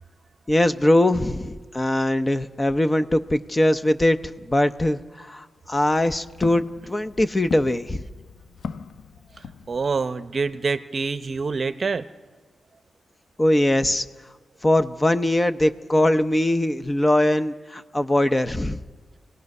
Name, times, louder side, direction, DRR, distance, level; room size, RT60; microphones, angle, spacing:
voice 1, 0.5-8.0 13.4-14.1 14.6-18.8, left 1 dB, 20° left, 10 dB, 0.7 m, -21 dB
Walk footsteps, 5.6-10.1, left 6 dB, 80° left, 0.6 m, -39 dB
voice 2, 9.7-12.1, right 4 dB, 45° right, 12 dB, 0.7 m, -26 dB
28.0 x 18.0 x 5.4 m, 1.3 s
wide cardioid pair, 110°, 0 cm